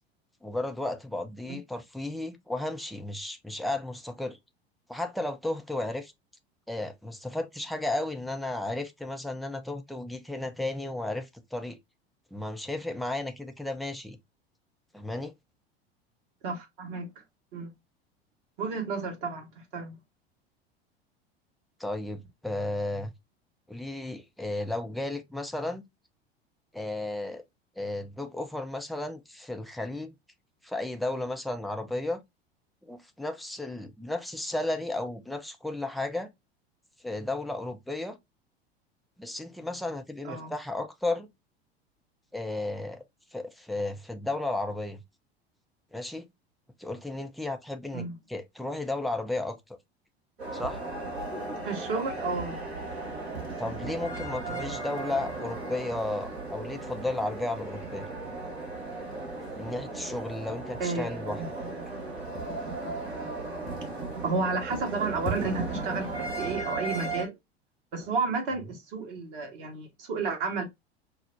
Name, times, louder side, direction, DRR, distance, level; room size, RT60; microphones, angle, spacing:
voice 1, 0.4-4.4 4.9-6.1 6.7-11.8 12.3-14.2 14.9-15.3 21.8-23.1 23.7-25.8 26.7-27.4 27.8-30.2 30.6-32.2 32.8-36.3 37.0-38.2 39.2-41.3 42.3-43.0 43.3-45.0 45.9-46.2 46.8-49.8 50.5-50.8 53.6-58.1 59.6-61.4 63.6-63.7, left 2 dB, ahead, 0.4 m, -34 dB
voice 2, 16.4-17.2 17.5-17.7 18.6-19.9 40.2-40.5 47.9-48.1 51.6-52.6 60.8-61.5 64.2-67.3 67.9-70.6, right 4 dB, 55° right, 1.5 m, -32 dB
sound 1, 50.4-67.2, right 3 dB, 75° right, 1.7 m, -36 dB
5.6 x 2.0 x 2.6 m
figure-of-eight pair, 80°, 32 cm